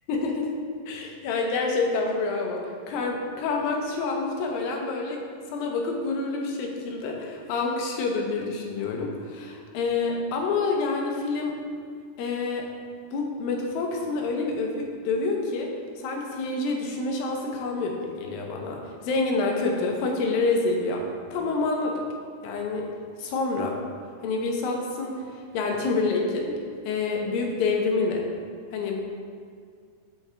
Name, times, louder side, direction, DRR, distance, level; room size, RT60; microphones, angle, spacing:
voice 1, 0.1-0.5 0.9-11.5 12.2-12.7 13.1-15.7 16.0-21.0 21.3-22.0 22.4-22.9 23.2-23.8 24.2-26.5 26.9-28.3 28.7-29.0, left 3 dB, 80° left, 1 dB, 2.5 m, -27 dB
7.2 x 5.3 x 3.4 m, 2.1 s
omnidirectional pair, 4.1 m